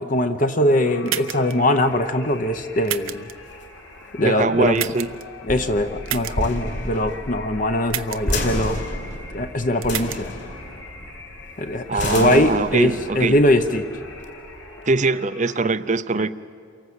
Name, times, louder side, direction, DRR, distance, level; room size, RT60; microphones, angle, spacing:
voice 1, 0.0-3.3 4.1-4.9 5.5-8.9 9.3-10.3 11.6-13.9, left 1 dB, 40° left, 8 dB, 0.8 m, -21 dB
sound 1, 0.9-15.6, left 4 dB, 80° left, 3.0 m, -43 dB
sound 2, 1.1-1.5 2.8-3.3 4.7-5.2 6.1-6.3 7.9-8.3 9.8-10.2, right 13 dB, 80° right, 0.8 m, -29 dB
sound 3, 1.9-14.9, left 1 dB, 55° left, 4.3 m, -32 dB
voice 2, 4.2-5.1 11.9-13.4 14.8-16.3, right 3 dB, 35° right, 14 dB, 0.6 m, -22 dB
28.5 x 24.0 x 8.0 m, 2.4 s
head